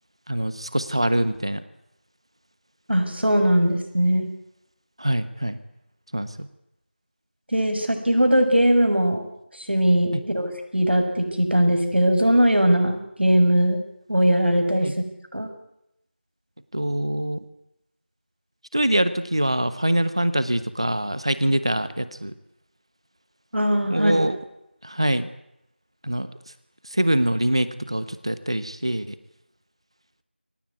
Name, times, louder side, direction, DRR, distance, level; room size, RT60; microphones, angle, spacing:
voice 1, 0.3-1.6 5.0-5.6 6.1-6.5 10.1-10.2 14.8-14.9 16.7-17.4 18.7-22.3 23.9-24.4 24.8-25.3 26.0-26.3 26.9-29.2, right 1 dB, 25° right, 14 dB, 1.2 m, -24 dB
voice 2, 2.9-4.3 7.5-9.3 9.5-13.8 14.1-14.9 15.3-15.5 23.5-24.3, equal, 65° right, 5 dB, 6.6 m, -20 dB
24.5 x 18.0 x 9.5 m, 0.82 s
figure-of-eight pair, 175°, 6 cm